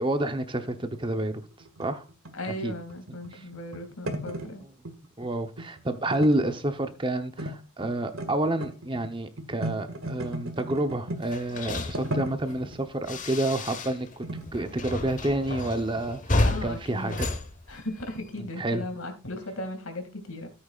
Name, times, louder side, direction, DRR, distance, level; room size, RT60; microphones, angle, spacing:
voice 1, 0.0-1.4 1.8-2.0 2.5-2.7 3.3-3.4 5.2-17.3 18.6-18.8, right 1 dB, 20° right, 0.8 m, -29 dB
sound 1, 0.8-5.0 5.2-5.8 6.1-7.1 7.4-7.6 7.8-11.3 11.7-12.8 13.4-13.6 14.2-15.4 16.0-16.1 16.7-17.3 18.2-18.4 18.7-18.8 19.0-19.1 19.5-19.7, right 1 dB, 70° right, 1.9 m, -37 dB
voice 2, 2.3-4.6 16.4-17.3 17.7-20.5, left 1 dB, 75° left, 2.4 m, -37 dB
sound 2, 11.2-14.2 14.4-18.3, left 2 dB, 35° left, 1.1 m, -31 dB
13.5 x 8.7 x 2.4 m
head